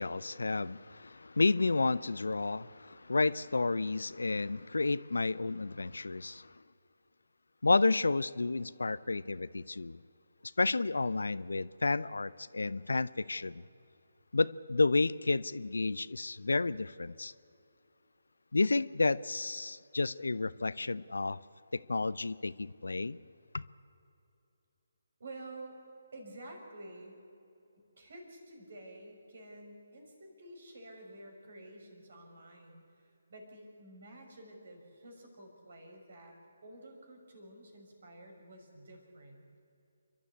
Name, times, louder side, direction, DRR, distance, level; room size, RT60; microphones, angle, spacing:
voice 1, 0.0-6.5 7.6-10.0 10.6-13.6 14.3-17.3 18.5-21.4 21.7-23.2 23.5-23.6, left 3 dB, 75° left, 0.6 m, -31 dB
voice 2, 25.2-25.8 26.1-27.2 27.8-39.5, right 1 dB, 55° right, 5.7 m, -50 dB
29.0 x 12.5 x 8.6 m
figure-of-eight pair, 145°, 0 cm